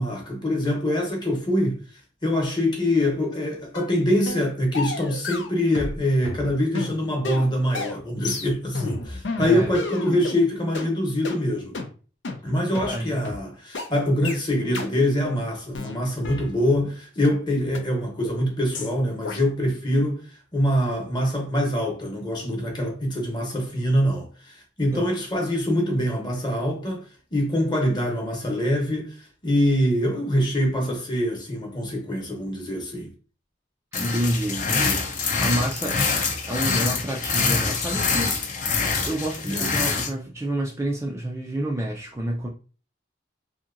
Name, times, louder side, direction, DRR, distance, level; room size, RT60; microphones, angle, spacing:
voice 1, 0.0-1.8 2.2-11.8 12.4-27.0 27.3-33.1 39.4-39.7, left 1 dB, 25° left, 0.9 m, -24 dB
sound 1, 3.7-3.9 4.3-4.5 4.7-6.0 6.2-10.4 10.7-10.9 11.2-11.4 11.7-11.9 12.2-12.4 12.7-12.9 13.2-13.4 13.7-13.9 14.2-14.4 14.7-14.9 15.2-15.4 15.7-16.9 17.2-17.3 17.7-17.8 18.2-18.4 18.7-18.9 19.2-19.4, left 3 dB, 85° left, 0.6 m, -32 dB
voice 2, 9.4-9.7 12.7-13.2 24.9-25.0 33.9-38.5 39.1-42.5, right 1 dB, 15° right, 0.3 m, -29 dB
sound 2, 33.9-40.1, left 4 dB, 40° left, 0.5 m, -25 dB
2.8 x 2.7 x 2.5 m
head